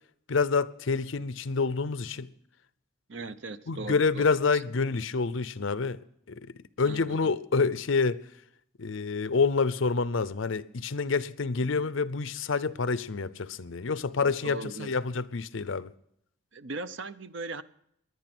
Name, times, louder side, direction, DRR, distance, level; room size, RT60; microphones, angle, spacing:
voice 1, 0.3-2.3 3.7-6.0 6.3-6.4 6.8-8.2 8.8-15.9, left 4 dB, 70° left, 0.6 m, -27 dB
voice 2, 3.1-4.6 6.8-7.3 14.2-15.0 16.5-17.6, right 3 dB, 65° right, 0.7 m, -39 dB
20.0 x 11.0 x 6.1 m
head